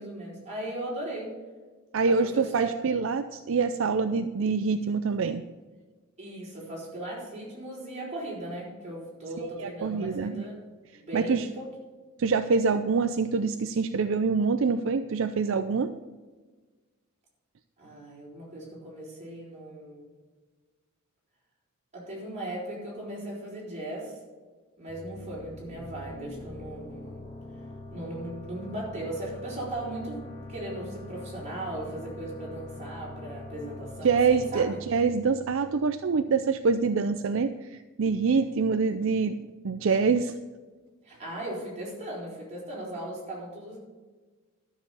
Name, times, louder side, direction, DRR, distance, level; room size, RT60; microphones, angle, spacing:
voice 1, 0.0-1.4 2.0-2.8 6.2-10.7 10.9-11.7 17.8-20.1 21.9-24.2 24.8-27.2 27.9-34.8 41.0-43.8, right 1 dB, 30° right, -4 dB, 4.4 m, -38 dB
voice 2, 1.9-5.4 9.6-10.5 11.1-11.5 12.2-15.9 34.0-39.4 39.6-40.3, right 5 dB, 65° right, 10 dB, 0.5 m, -25 dB
sound 1, 24.9-36.3, left 1 dB, 30° left, 2.4 m, -43 dB
12.5 x 6.8 x 7.0 m, 1.3 s
head